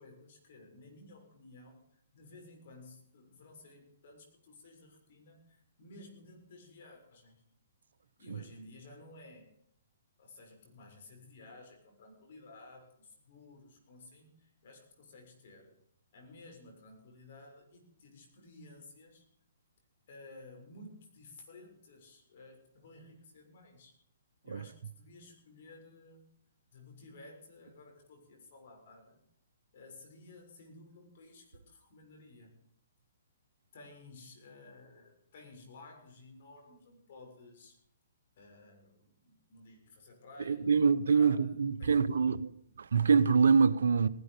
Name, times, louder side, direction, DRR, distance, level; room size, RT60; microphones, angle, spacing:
voice 1, 0.0-7.4 8.2-9.5 10.2-15.7 16.1-19.2 20.1-23.9 24.4-26.2 26.7-29.2 29.7-32.6 33.7-37.7 38.4-42.3, left 2 dB, 55° left, 6.8 m, -54 dB
voice 2, 40.4-42.5 42.8-44.1, right 5 dB, 75° right, 1.0 m, -25 dB
19.0 x 12.0 x 5.2 m
hypercardioid pair, 135°, 0 cm